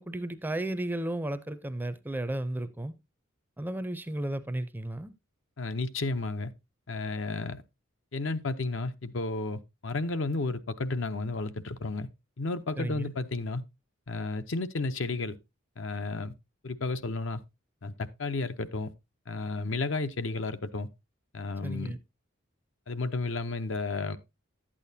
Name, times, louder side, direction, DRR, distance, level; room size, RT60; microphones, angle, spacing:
voice 1, 0.0-3.0 3.6-5.1 12.8-13.1 21.6-22.0, right 1 dB, 10° right, 0.5 m, -33 dB
voice 2, 5.6-6.5 6.9-7.6 8.1-12.1 12.4-13.6 14.1-15.4 15.8-16.3 16.6-17.4 17.8-18.9 19.3-20.9 21.3-21.9 22.9-24.2, left 3 dB, 65° left, 0.7 m, -32 dB
11.5 x 8.6 x 2.7 m
head